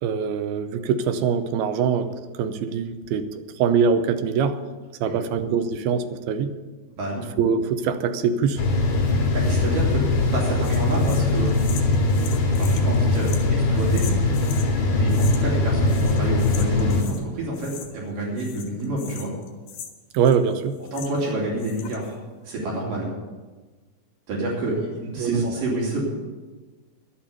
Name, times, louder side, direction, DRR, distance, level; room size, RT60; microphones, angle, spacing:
voice 1, 0.0-3.3 3.6-4.6 5.0-6.5 7.4-8.6 20.1-20.8 25.2-25.5, right 6 dB, 85° right, 9 dB, 2.6 m, -23 dB
voice 2, 5.0-5.4 7.0-7.3 9.3-10.1 10.3-11.5 12.6-14.0 14.9-19.3 20.9-22.2 22.4-23.1 24.3-26.2, right 1 dB, 60° right, -3 dB, 4.4 m, -28 dB
sound 1, 8.6-17.0, left 2 dB, 70° left, 4.4 m, -21 dB
sound 2, 10.6-14.7 15.1-15.6 15.8-17.2 17.5-18.1 18.4-21.3 21.6-22.1, left 8 dB, 90° left, 3.5 m, -41 dB
11.5 x 8.6 x 8.3 m, 1.3 s
omnidirectional pair, 4.4 m